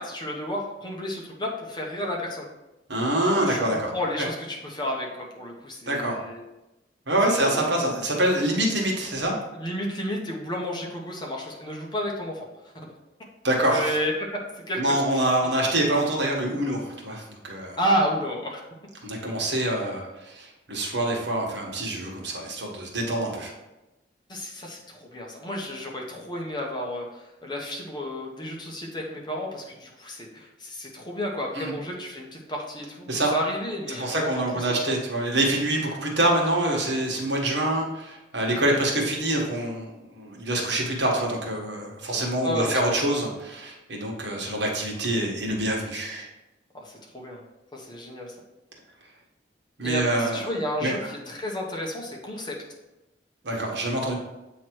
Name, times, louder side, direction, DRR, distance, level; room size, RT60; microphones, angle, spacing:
voice 1, 0.0-2.5 3.5-6.4 7.3-7.6 9.5-12.5 13.7-14.1 14.7-15.5 17.8-18.6 24.3-34.9 42.4-42.9 46.7-47.4 47.7-48.3 49.8-52.5, equal, 25° left, -1 dB, 1.1 m, -31 dB
voice 2, 2.9-3.9 4.2-4.3 5.9-6.2 7.1-9.3 13.4-13.9 14.8-17.8 19.0-23.5 31.5-31.7 33.1-33.3 33.9-46.3 49.8-50.4 50.8-50.9 53.4-54.2, right 1 dB, 75° right, -1 dB, 1.5 m, -25 dB
8.0 x 3.2 x 4.6 m, 0.98 s
head